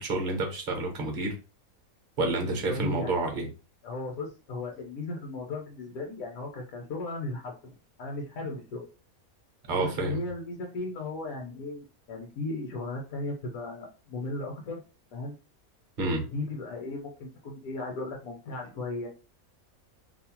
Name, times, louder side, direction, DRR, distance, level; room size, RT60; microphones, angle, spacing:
voice 1, 0.0-1.4 2.2-3.5 9.7-10.2 16.0-16.2, right 2 dB, 45° right, 0.7 m, -29 dB
voice 2, 2.5-3.4 3.8-8.8 9.8-14.8 15.1-15.4 16.2-19.1, left 2 dB, 80° left, 1.1 m, -36 dB
2.7 x 2.0 x 2.9 m
omnidirectional pair, 1.5 m